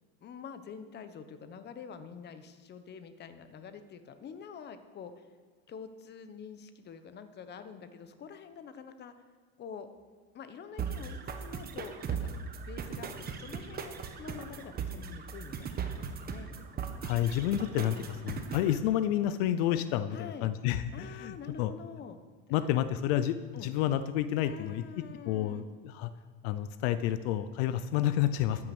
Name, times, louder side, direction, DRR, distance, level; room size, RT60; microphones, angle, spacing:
voice 1, 0.2-5.3 5.7-9.1 9.6-9.9 10.3-12.3 12.6-16.5 17.9-18.1 19.7-19.8 20.1-20.5 20.9-22.2 23.5-23.7 24.4-25.7 27.7-27.8, left 6 dB, 35° left, 10 dB, 1.1 m, -46 dB
sound 1, 10.8-18.8, right 6 dB, 30° right, 1.4 m, -38 dB
voice 2, 17.0-18.0 18.2-21.7 22.5-24.8 25.3-26.1 26.4-28.7, left 12 dB, 80° left, 13 dB, 0.7 m, -30 dB
13.5 x 9.7 x 6.1 m, 1.5 s
supercardioid pair, 125°, 31 cm